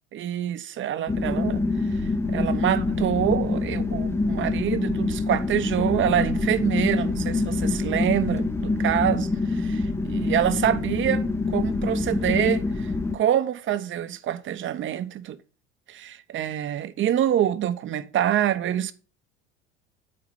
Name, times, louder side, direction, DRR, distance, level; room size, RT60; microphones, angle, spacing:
voice 1, 0.1-1.6 2.0-15.4 15.9-18.9, right 10 dB, 35° right, 0.9 m, -26 dB
sound 1, 1.1-13.1, left 3 dB, 10° left, 0.7 m, -26 dB
8.7 x 4.7 x 5.1 m
figure-of-eight pair, 65°, 34 cm